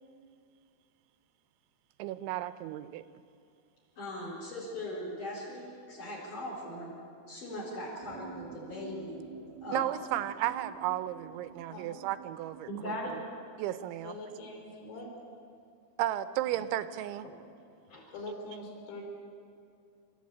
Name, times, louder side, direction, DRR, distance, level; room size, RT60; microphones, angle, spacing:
voice 1, 2.0-3.0 9.7-12.9 13.6-14.2 16.0-17.3, right 13 dB, 90° right, 12 dB, 3.1 m, -34 dB
voice 2, 4.0-6.9 7.3-9.2 9.6-9.8 12.7-13.2 17.2-17.3 17.9-18.0, left 1 dB, 45° left, -4 dB, 5.5 m, -39 dB
sound 1, 8.0-13.3, right 4 dB, 70° right, 2.3 m, -49 dB
voice 3, 14.0-15.1 18.1-19.0, left 2 dB, 80° left, 1 dB, 5.8 m, -43 dB
25.5 x 14.0 x 8.7 m, 2.4 s
omnidirectional pair, 5.3 m